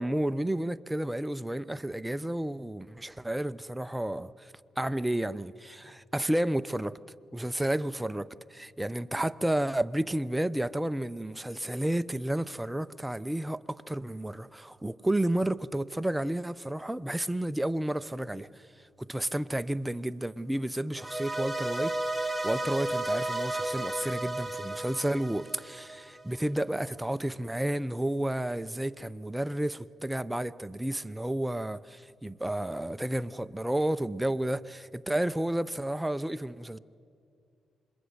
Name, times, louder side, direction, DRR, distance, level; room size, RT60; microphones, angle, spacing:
voice 1, 0.0-4.5 4.8-7.0 7.3-18.5 19.0-36.8, right 1 dB, 10° right, 0.7 m, -31 dB
sound 1, 21.0-26.2, right 1 dB, 5° left, 2.1 m, -33 dB
26.0 x 21.5 x 9.6 m
cardioid pair, 70°, 0 cm